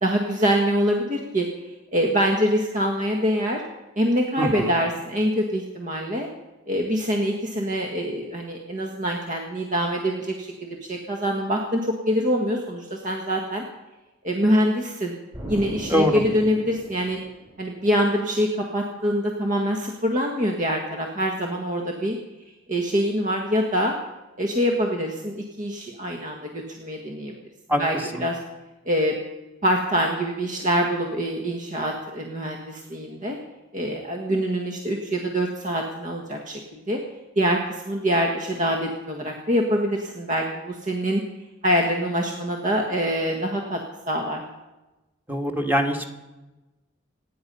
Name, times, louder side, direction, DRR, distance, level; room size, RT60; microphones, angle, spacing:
voice 1, 0.0-3.6 3.9-6.3 6.7-13.6 14.2-15.1 15.5-17.2 17.6-22.2 22.7-23.9 24.4-27.3 27.8-28.4 28.8-29.2 29.6-33.4 33.7-37.0 37.3-41.2 41.6-43.8 44.1-44.4, equal, 40° right, 1 dB, 1.6 m, -25 dB
voice 2, 4.4-4.7 15.9-16.2 27.7-27.8 28.1-28.2 45.3-46.1, equal, 10° right, 3 dB, 1.7 m, -23 dB
Explosion, 15.3-18.0, right 1 dB, 25° right, 6.5 m, -37 dB
25.5 x 10.0 x 5.5 m, 1.1 s
head